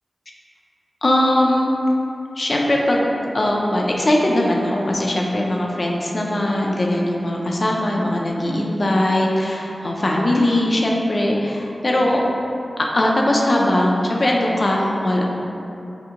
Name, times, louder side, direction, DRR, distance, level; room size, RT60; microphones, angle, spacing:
voice 1, 1.0-1.7 2.4-12.2 12.8-15.2, left 1 dB, 45° left, -1 dB, 0.3 m, -20 dB
2.8 x 2.5 x 2.4 m, 2.8 s
wide cardioid pair, 100°, 0 cm